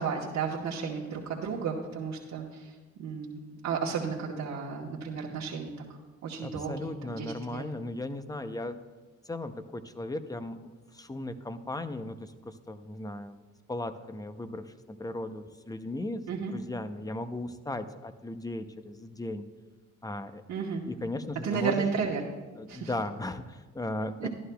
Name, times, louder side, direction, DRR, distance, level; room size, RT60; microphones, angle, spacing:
voice 1, 0.0-5.7 6.2-7.6 16.3-16.5 20.5-20.8 21.4-22.2 22.7-22.9 24.2-24.3, right 6 dB, 65° right, -4 dB, 1.2 m, -33 dB
voice 2, 6.4-8.8 9.3-13.4 13.7-16.2 16.5-19.4 20.0-20.4 20.9-21.8 22.6-24.3, left 2 dB, 10° left, 10 dB, 0.6 m, -37 dB
13.5 x 11.0 x 2.3 m, 1.3 s
cardioid pair, 90°, 30 cm